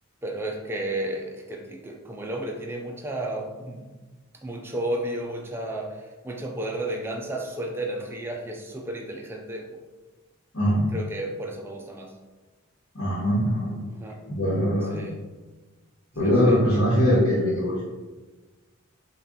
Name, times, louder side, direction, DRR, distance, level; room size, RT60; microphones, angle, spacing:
voice 1, 0.2-3.9 4.4-9.8 10.9-12.2 14.0-14.2 14.9-15.3 16.2-16.6, right 1 dB, 10° right, 1 dB, 0.3 m, -33 dB
voice 2, 10.5-10.9 12.9-13.7 14.3-15.0 16.2-17.8, equal, 75° left, -10 dB, 1.1 m, -22 dB
4.0 x 2.3 x 3.7 m, 1.2 s
head